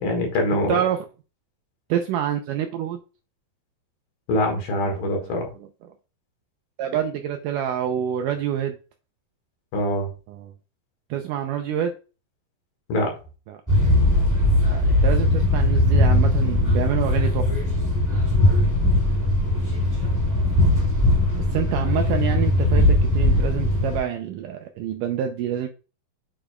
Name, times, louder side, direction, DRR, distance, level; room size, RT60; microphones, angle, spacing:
voice 1, 0.0-0.8 4.3-5.5 9.7-10.1 12.9-13.1, left 1 dB, 70° left, 3 dB, 3.5 m, -23 dB
voice 2, 0.7-1.1 1.9-3.0 4.8-5.7 6.8-8.8 10.3-10.5 11.1-11.9 13.5-13.6 14.7-17.5 21.5-25.7, right 9 dB, 80° right, 5 dB, 1.9 m, -27 dB
sound 1, 13.7-24.0, left 1 dB, 15° right, 0.6 m, -19 dB
8.9 x 4.9 x 2.3 m, 0.33 s
omnidirectional pair, 4.3 m